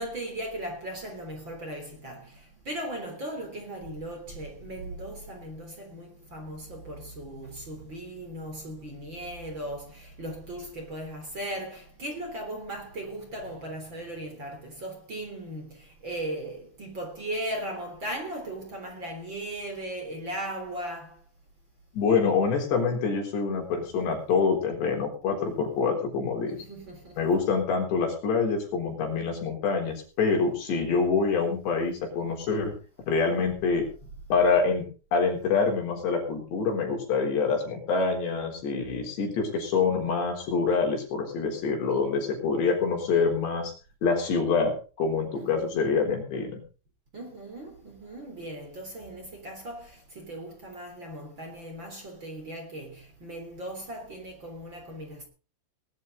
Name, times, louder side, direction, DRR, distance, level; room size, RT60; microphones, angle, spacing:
voice 1, 0.0-21.2 26.5-27.2 34.0-34.1 45.3-45.8 47.1-55.2, right 1 dB, 30° right, 3.8 m, -38 dB
voice 2, 21.9-26.6 27.2-32.7 33.1-33.9 34.3-34.9 35.1-43.7 44.0-46.6, left 5 dB, 75° left, 5.9 m, -26 dB
20.0 x 11.0 x 3.9 m
omnidirectional pair, 5.0 m